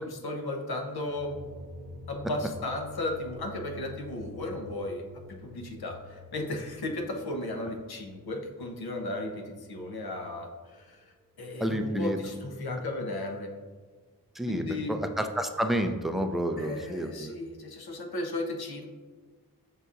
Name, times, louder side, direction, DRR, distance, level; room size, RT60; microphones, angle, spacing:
voice 1, 0.0-1.3 2.1-5.0 5.3-11.0 11.4-13.5 14.5-15.0 16.6-18.9, left 2 dB, 80° left, 3 dB, 0.7 m, -35 dB
sound 1, 1.0-9.9, left 3 dB, 40° right, 0.8 m, -48 dB
voice 2, 11.6-12.2 14.4-14.6 14.9-15.0 15.4-17.3, equal, ahead, 6 dB, 0.3 m, -29 dB
5.6 x 3.9 x 2.4 m, 1.4 s
wide cardioid pair, 55°, 37 cm